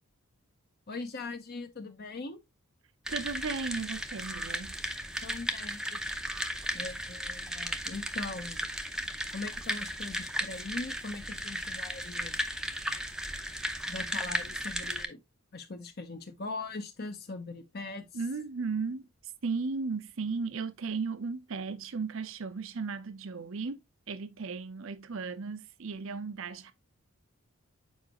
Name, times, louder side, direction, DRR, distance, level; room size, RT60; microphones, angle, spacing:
voice 1, 0.9-2.4 5.2-6.1 6.7-8.7 9.3-12.4 13.9-15.2 15.5-18.1, left 3 dB, 45° left, 0.7 m, -41 dB
sound 1, 3.0-15.0, equal, 5° right, 0.6 m, -35 dB
voice 2, 3.1-4.7 18.1-19.1 19.4-23.8 24.1-26.7, right 4 dB, 60° right, 0.6 m, -35 dB
7.2 x 5.0 x 2.9 m
head